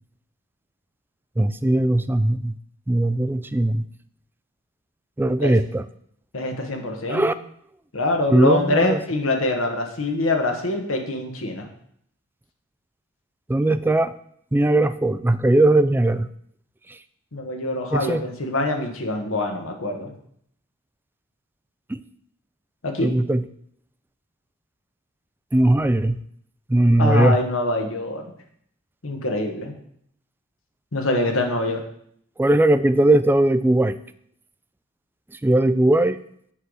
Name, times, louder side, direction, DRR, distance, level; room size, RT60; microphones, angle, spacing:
voice 1, 1.4-2.6 2.9-3.9 5.2-5.8 7.1-7.3 8.3-9.0 13.5-14.1 14.5-16.3 17.9-18.2 21.9-22.0 23.0-23.4 25.5-26.2 26.7-27.4 32.4-34.0 35.4-36.2, right 1 dB, 10° right, 13 dB, 0.3 m, -19 dB
voice 2, 6.3-7.3 7.9-11.7 17.3-20.1 22.8-23.1 27.0-28.2 29.0-29.7 30.9-31.8, left 2 dB, 70° left, 4 dB, 1.3 m, -24 dB
7.9 x 4.0 x 6.2 m, 0.67 s
head